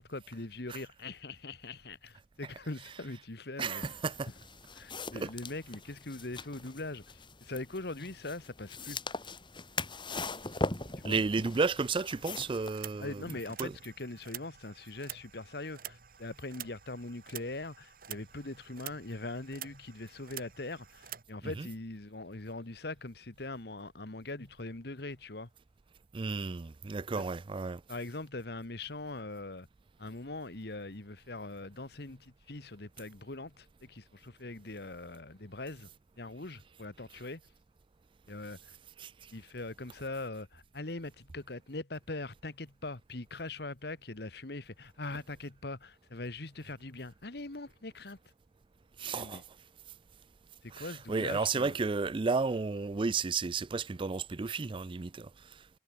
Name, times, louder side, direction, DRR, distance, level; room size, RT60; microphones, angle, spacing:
voice 1, 0.0-3.8 4.7-9.0 10.9-11.2 13.0-25.5 27.1-27.2 27.9-29.7 30.0-35.9 36.2-37.4 38.3-38.7 39.3-48.2 49.0-49.4 50.6-51.8, left 2 dB, 65° left, 1.6 m, -42 dB
voice 2, 3.6-4.3 5.1-5.3 11.0-13.2 13.6-13.7 21.4-21.7 26.1-27.8 39.0-39.1 49.0-49.4 50.7-55.3, right 4 dB, 30° right, 0.4 m, -32 dB
sound 1, 3.8-12.7, left 3 dB, 30° left, 3.1 m, -41 dB
sound 2, 12.1-21.2, right 11 dB, 55° right, 3.2 m, -48 dB
head